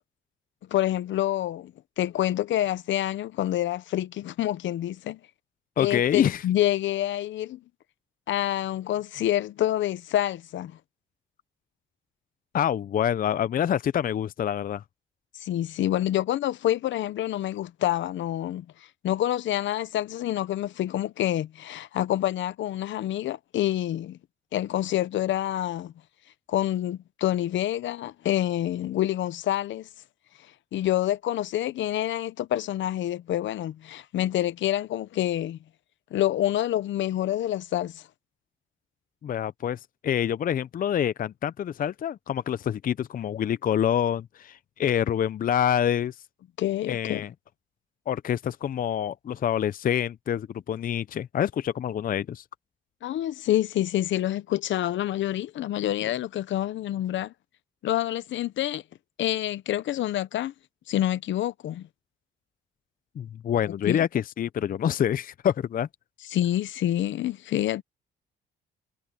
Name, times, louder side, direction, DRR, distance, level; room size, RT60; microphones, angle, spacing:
voice 1, 0.7-5.2 5.8-7.6 8.3-10.8 15.4-18.7 19.0-24.2 24.5-25.9 26.5-29.9 30.7-35.6 36.1-38.0 46.6-47.2 53.0-57.3 57.8-58.8 59.2-60.5 60.9-61.9 63.9-64.0 66.3-67.8, left 13 dB, 75° left, 0.8 m, -27 dB
voice 2, 5.8-6.4 12.5-14.8 39.2-46.1 46.9-47.3 48.1-52.4 63.2-65.9, left 9 dB, 45° left, 0.5 m, -26 dB
cardioid pair, 90°, 20 cm